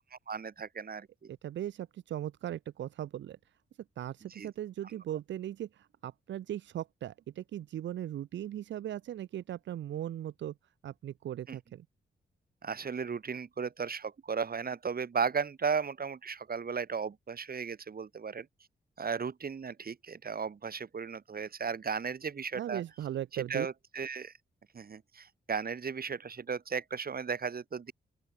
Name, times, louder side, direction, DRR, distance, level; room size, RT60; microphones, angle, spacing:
voice 1, 0.3-1.3 4.3-4.5 4.8-5.0 11.5-11.6 12.6-18.5 19.0-22.8 23.3-24.3 24.7-27.9, right 6 dB, 55° right, 3.8 m, -35 dB
voice 2, 1.3-3.4 4.0-10.5 10.8-11.8 22.6-23.7, right 11 dB, 85° right, 1.1 m, -38 dB
open air
cardioid pair, 55°, 19 cm